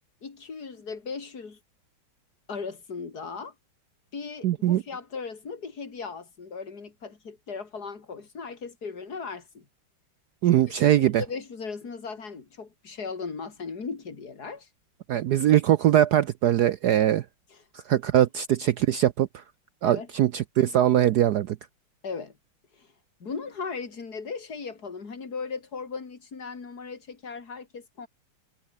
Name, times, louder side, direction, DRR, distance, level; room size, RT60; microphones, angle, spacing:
voice 1, 0.2-1.6 2.5-3.5 4.1-9.7 10.4-10.6 11.0-14.7 19.8-20.1 22.0-22.3 22.7-22.9 23.2-28.1, left 5 dB, 45° left, 3.4 m, -37 dB
voice 2, 4.4-4.8 10.4-11.2 15.1-17.2 17.9-19.4 19.8-21.6, right 12 dB, 70° right, 0.9 m, -21 dB
omnidirectional pair, 2.3 m